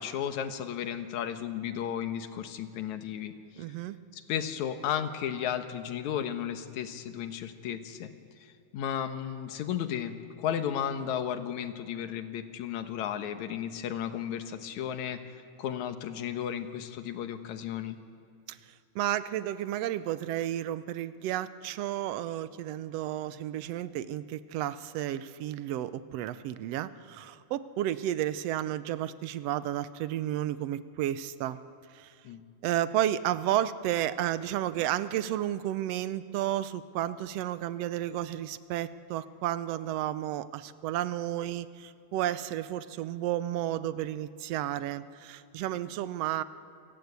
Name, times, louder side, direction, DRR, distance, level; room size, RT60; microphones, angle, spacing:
voice 1, 0.0-3.6 4.1-8.1 8.4-15.2 15.6-18.0 32.2-32.4, left 9 dB, 80° left, 8 dB, 2.5 m, -34 dB
voice 2, 3.6-4.0 18.5-31.6 31.9-32.1 32.6-46.4, right 12 dB, 70° right, 14 dB, 1.7 m, -32 dB
28.5 x 19.5 x 8.2 m, 2.4 s
omnidirectional pair, 3.3 m